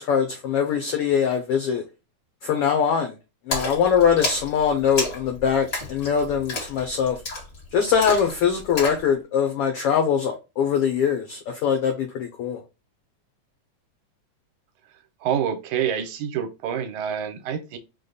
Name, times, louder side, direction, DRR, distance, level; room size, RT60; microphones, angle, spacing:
voice 1, 0.0-1.8 2.4-3.1 3.5-7.2 7.7-12.6, left 7 dB, 90° left, 1.2 m, -22 dB
Splash splatter, 3.5-9.1, left 2 dB, 35° left, 1.6 m, -31 dB
voice 2, 15.2-17.8, right 8 dB, 80° right, 2.1 m, -27 dB
5.2 x 2.2 x 3.8 m
omnidirectional pair, 3.5 m